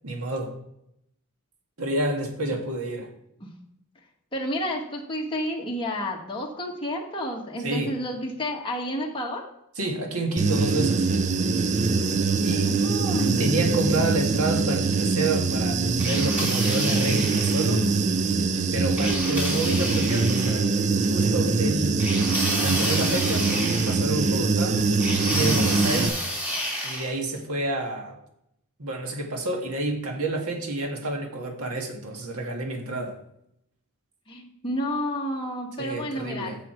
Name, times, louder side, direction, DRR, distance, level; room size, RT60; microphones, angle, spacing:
voice 1, 0.0-0.6 1.8-3.1 7.6-8.0 9.8-11.1 12.4-12.7 13.2-17.9 18.7-20.7 21.1-22.0 22.6-24.8 25.2-26.2 26.8-28.2 28.8-33.2 35.8-36.6, right 2 dB, 80° right, 2 dB, 1.8 m, -29 dB
voice 2, 4.3-9.4 12.6-13.4 34.3-36.6, equal, 25° left, -1 dB, 1.4 m, -30 dB
Human voice / Buzz, 10.4-26.1, right 4 dB, 35° right, 0.4 m, -23 dB
sound 1, 16.0-17.7 19.0-20.6 22.0-24.3 25.0-27.1, equal, 5° right, 2.5 m, -30 dB
7.6 x 7.0 x 4.5 m, 0.77 s
head